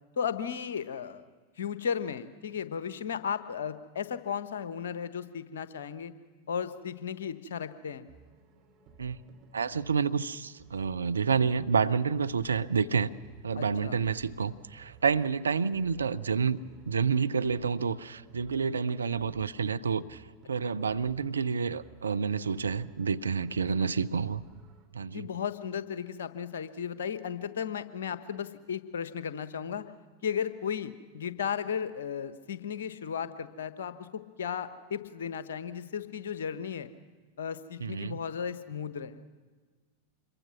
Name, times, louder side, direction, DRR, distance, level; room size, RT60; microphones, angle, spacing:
voice 1, 0.2-1.2 1.6-6.1 6.5-8.1 13.5-14.0 20.6-20.7 23.8-23.9 25.1-29.8 30.2-36.9 37.4-39.2, left 7 dB, 60° left, 12 dB, 1.2 m, -35 dB
sound 1, 8.1-24.9, right 4 dB, 35° right, 3.5 m, -57 dB
voice 2, 9.5-13.1 13.4-16.6 16.9-20.2 20.5-24.4 24.9-25.3 37.8-38.2, right 5 dB, 70° right, 13 dB, 0.7 m, -29 dB
26.5 x 22.5 x 6.1 m, 1.4 s
figure-of-eight pair, 90°, 0 cm